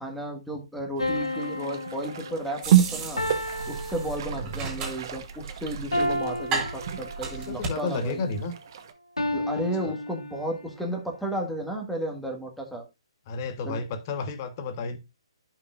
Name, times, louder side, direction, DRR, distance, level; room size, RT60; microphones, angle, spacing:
voice 1, 0.0-3.2 3.7-8.2 9.3-12.8 13.6-13.8, right 1 dB, ahead, 1.7 m, -33 dB
sound 1, 1.0-4.7 5.9-7.5 9.2-10.7, left 1 dB, 85° left, 1.2 m, -32 dB
sound 2, 1.0-8.9, right 11 dB, 45° right, 1.1 m, -30 dB
sound 3, 2.6-7.7, right 4 dB, 20° right, 3.0 m, -34 dB
voice 2, 4.3-4.7 7.2-8.5 9.8-9.9 13.3-15.0, left 3 dB, 35° left, 1.3 m, -32 dB
13.5 x 5.8 x 2.5 m
figure-of-eight pair, 135°, 3 cm